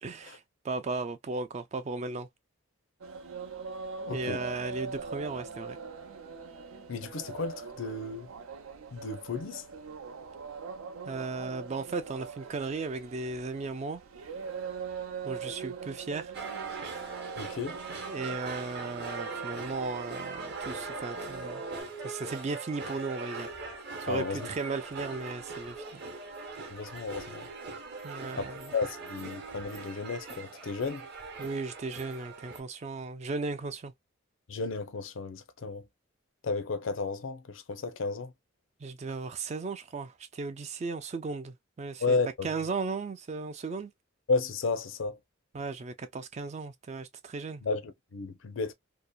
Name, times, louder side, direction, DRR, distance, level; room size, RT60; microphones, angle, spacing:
voice 1, 0.0-2.3 4.1-5.8 11.1-14.0 15.2-16.3 18.1-21.6 22.0-23.5 24.0-26.0 28.0-28.7 31.4-33.9 38.8-42.2 42.4-43.9 45.5-47.6, right 3 dB, 35° right, 0.3 m, -36 dB
sound 1, 3.0-21.8, right 5 dB, 90° right, 0.6 m, -42 dB
voice 2, 4.1-4.4 6.9-8.3 8.9-9.6 17.4-17.8 24.1-24.5 26.7-27.5 28.4-31.1 34.5-35.8 36.4-38.3 42.0-42.5 44.3-45.2 47.6-48.7, left 4 dB, 70° left, 0.5 m, -33 dB
sound 2, 16.3-32.6, right 4 dB, 50° right, 0.8 m, -41 dB
2.7 x 2.1 x 2.2 m
head